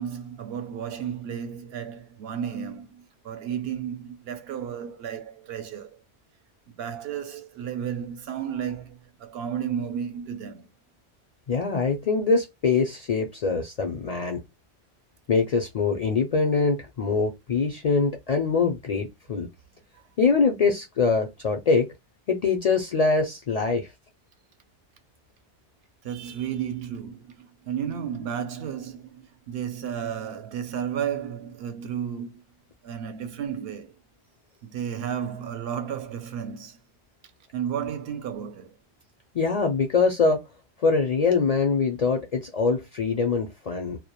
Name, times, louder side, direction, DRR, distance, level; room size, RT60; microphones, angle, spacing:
voice 1, 0.0-6.0 6.7-10.7 19.9-20.1 26.0-32.4 32.8-34.0 34.6-36.8 37.5-38.8, right 8 dB, 70° right, 0.8 m, -33 dB
voice 2, 11.5-14.4 15.3-19.5 20.2-21.9 22.3-23.9 39.3-40.4 40.8-44.0, left 4 dB, 55° left, 0.4 m, -23 dB
2.1 x 2.1 x 2.8 m
omnidirectional pair, 1.1 m